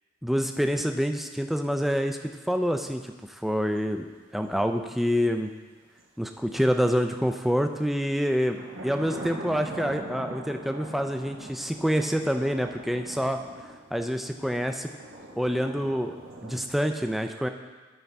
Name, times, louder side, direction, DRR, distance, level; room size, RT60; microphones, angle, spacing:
voice 1, 0.2-5.5 6.2-13.4 13.9-14.9 15.4-17.5, equal, ahead, 5 dB, 0.3 m, -27 dB
sound 1, 3.8-4.1 5.6-5.7 6.0-6.1 7.1-7.4 8.5-16.6, right 1 dB, 80° right, 1.1 m, -42 dB
12.0 x 5.3 x 3.4 m, 1.3 s
head